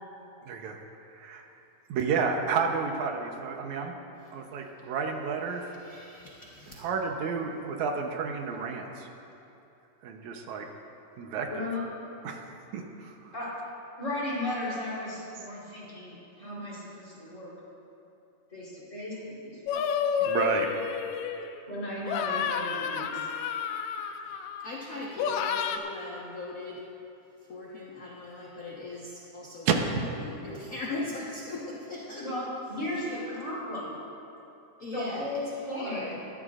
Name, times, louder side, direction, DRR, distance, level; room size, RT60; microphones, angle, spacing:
voice 1, 0.5-0.8 1.1-1.5 1.9-3.9 4.3-5.6 6.8-9.1 10.0-10.7 11.2-11.5 12.2-12.4 12.7-13.3 20.2-20.7 29.7-30.1, right 5 dB, 80° right, 3 dB, 2.3 m, -30 dB
voice 2, 5.6-6.8 24.6-26.8 27.5-32.3 32.7-33.2 34.8-36.2, left 2 dB, 50° left, -5 dB, 1.1 m, -39 dB
voice 3, 11.5-11.8 13.3-13.5 14.0-17.5 18.5-19.8 21.7-23.2 32.2-33.9 34.9-36.2, left 1 dB, 25° left, -7 dB, 3.8 m, -35 dB
sound 1, 19.7-21.6 22.1-24.7 25.2-25.8, left 7 dB, 85° left, 2.0 m, -30 dB
20.0 x 14.5 x 2.5 m, 2.8 s
omnidirectional pair, 3.3 m